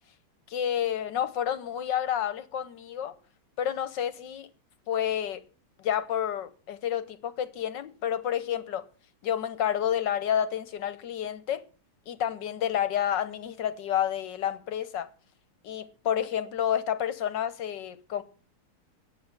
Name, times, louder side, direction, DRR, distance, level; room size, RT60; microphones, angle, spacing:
voice 1, 0.5-3.1 3.6-4.5 4.9-5.4 5.8-8.8 9.2-11.6 12.1-15.1 15.6-18.2, left 10 dB, 60° left, 1.4 m, -29 dB
10.0 x 7.9 x 9.6 m
omnidirectional pair, 2.4 m